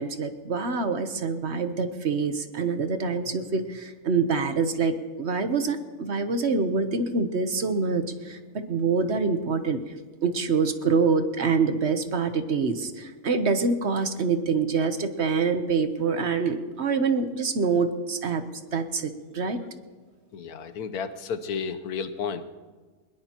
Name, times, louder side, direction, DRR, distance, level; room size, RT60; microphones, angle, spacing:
voice 1, 0.0-9.8 10.2-18.4 18.7-19.6, right 4 dB, 50° right, 8 dB, 1.1 m, -26 dB
voice 2, 20.3-22.4, left 6 dB, 90° left, 11 dB, 1.4 m, -32 dB
22.5 x 20.5 x 2.9 m, 1.4 s
omnidirectional pair, 1.6 m